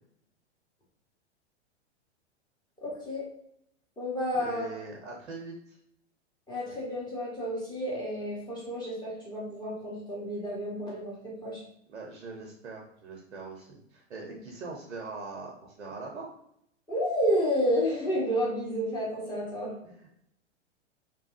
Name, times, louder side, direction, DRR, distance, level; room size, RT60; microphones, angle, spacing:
voice 1, 2.8-3.2 4.0-4.7 6.5-11.6 14.3-14.4 16.9-19.7, equal, 10° left, -6 dB, 0.7 m, -30 dB
voice 2, 4.4-5.8 11.9-16.3 19.8-20.2, right 3 dB, 85° right, 0 dB, 0.6 m, -42 dB
2.7 x 2.2 x 2.3 m, 0.75 s
figure-of-eight pair, 100°, 35 cm